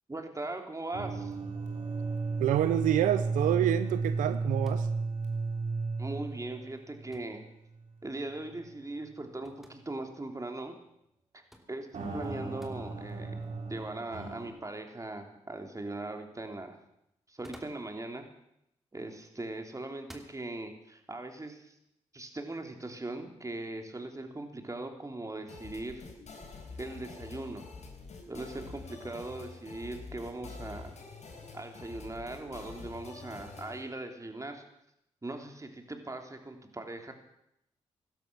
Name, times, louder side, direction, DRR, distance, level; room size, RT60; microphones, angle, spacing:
voice 1, 0.1-1.3 6.0-7.4 8.0-10.8 11.3-11.4 11.7-13.3 13.7-16.8 17.3-18.3 18.9-21.7 22.1-26.1 26.8-27.6 28.3-30.9 31.5-34.6 35.2-37.1, right 2 dB, 25° right, 5 dB, 3.1 m, -40 dB
sound 1, 0.9-7.5 7.8-7.9 8.5-8.6 11.9-14.5, right 4 dB, 70° right, 3.6 m, -34 dB
voice 2, 2.4-4.9, right 12 dB, 90° right, 12 dB, 0.6 m, -27 dB
sound 2, 4.6-5.0 7.1-7.4 9.4-9.8 11.5-11.7 12.6-12.8 13.8-13.9 17.2-17.9 19.0-19.4 20.0-20.4, equal, ahead, 3.0 m, -52 dB
sound 3, 25.5-33.8, left 4 dB, 65° left, 4.2 m, -47 dB
17.0 x 12.5 x 6.1 m, 0.80 s
supercardioid pair, 50°, 13 cm